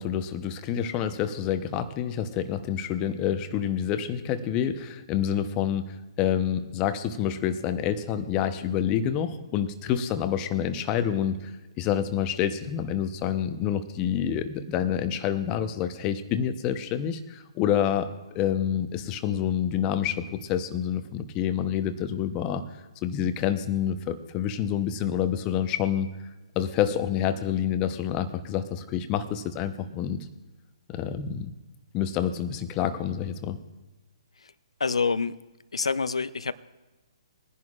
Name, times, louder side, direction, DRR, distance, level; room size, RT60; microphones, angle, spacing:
voice 1, 0.0-11.5 11.8-22.6 23.0-26.1 26.6-30.2 30.9-31.5 31.9-33.6, left 9 dB, 25° left, 10 dB, 0.8 m, -28 dB
voice 2, 34.8-35.4 35.7-36.5, left 4 dB, 80° left, 16 dB, 0.6 m, -27 dB
21.5 x 10.5 x 2.4 m, 1.1 s
hypercardioid pair, 135°, 3 cm